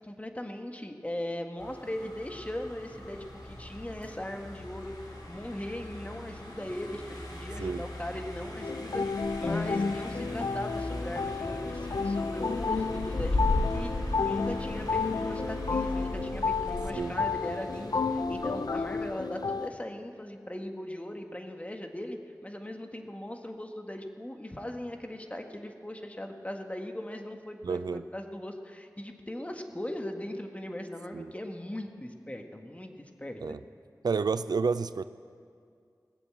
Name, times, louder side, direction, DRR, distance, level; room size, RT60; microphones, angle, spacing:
voice 1, 0.0-13.9 14.2-33.6, left 1 dB, 20° left, 4 dB, 1.3 m, -39 dB
Car passing by, 1.6-19.1, left 2 dB, 90° left, 2.5 m, -37 dB
sound 1, 8.6-19.7, left 4 dB, 70° left, 0.5 m, -31 dB
voice 2, 27.6-28.0 31.1-31.3 33.4-33.6 34.0-35.0, right 5 dB, 75° right, 14 dB, 0.3 m, -29 dB
18.0 x 7.0 x 8.5 m, 2.2 s
wide cardioid pair, 50°, 7 cm